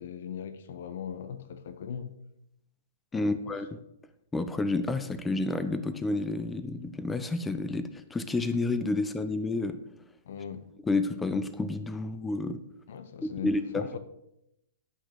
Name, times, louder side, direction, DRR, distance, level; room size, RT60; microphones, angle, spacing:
voice 1, 0.0-2.1 3.1-3.5 10.2-10.7 12.9-14.0, left 8 dB, 60° left, 11 dB, 0.9 m, -39 dB
voice 2, 3.1-3.8 4.3-9.8 10.9-12.6 13.2-14.0, left 2 dB, 10° left, 11 dB, 0.8 m, -30 dB
11.5 x 5.9 x 6.5 m, 0.83 s
figure-of-eight pair, 115°, 0 cm